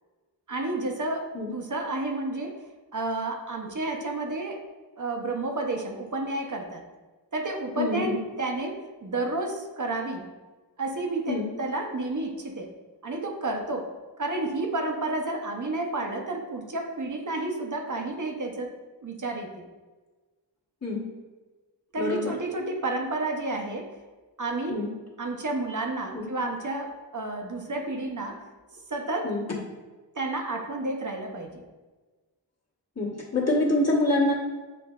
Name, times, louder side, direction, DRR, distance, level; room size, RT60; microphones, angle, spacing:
voice 1, 0.5-2.6 2.9-4.6 5.0-6.8 7.3-10.2 10.8-12.7 13.0-13.9 14.2-18.7 19.0-19.7 21.9-23.9 24.4-24.8 25.2-28.4 28.7-29.3 30.2-31.6, right 2 dB, 45° right, 2 dB, 0.8 m, -31 dB
voice 2, 7.8-8.2 11.3-11.5 20.8-21.0 22.0-22.3 24.7-24.9 26.1-26.3 29.2-29.5 33.0-34.3, left 2 dB, 35° left, -5 dB, 1.3 m, -26 dB
7.6 x 2.6 x 2.4 m, 1.3 s
wide cardioid pair, 60°, 44 cm